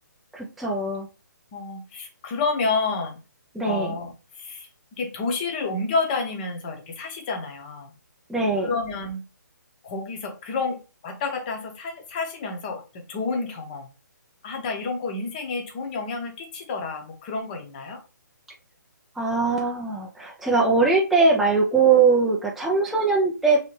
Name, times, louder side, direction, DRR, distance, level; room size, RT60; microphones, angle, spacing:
voice 1, 0.3-1.1 3.6-3.9 8.3-8.7 19.2-23.6, right 4 dB, ahead, 0.3 m, -21 dB
voice 2, 1.5-3.2 3.6-4.7 5.0-7.9 8.6-9.2 9.8-13.9 14.4-18.0, left 4 dB, 30° left, 0.8 m, -29 dB
3.2 x 2.8 x 3.1 m
figure-of-eight pair, 140°, 10 cm